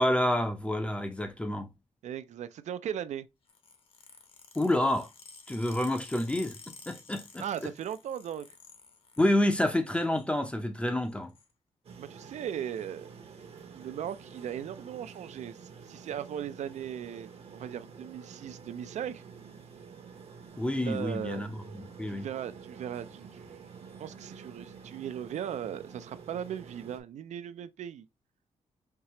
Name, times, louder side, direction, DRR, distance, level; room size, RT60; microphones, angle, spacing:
voice 1, 0.0-1.7 4.6-5.1 5.5-7.4 9.2-11.3 20.6-21.5 21.7-22.3, left 1 dB, 10° left, 0.5 m, -28 dB
voice 2, 2.0-3.3 7.4-8.5 12.0-13.1 13.7-19.2 20.8-21.5 22.1-23.6 24.0-28.1, right 9 dB, 65° right, 0.4 m, -38 dB
sound 1, 3.5-9.4 9.7-10.3 11.0-11.5 12.6-12.8 13.8-14.1 14.4-14.5 14.8-14.9 15.2-15.6 16.2-16.3 17.3-17.4, left 4 dB, 45° left, 0.8 m, -52 dB
sound 2, 11.8-27.0, right 6 dB, 50° right, 0.9 m, -49 dB
4.6 x 2.8 x 2.9 m
wide cardioid pair, 145°, 13 cm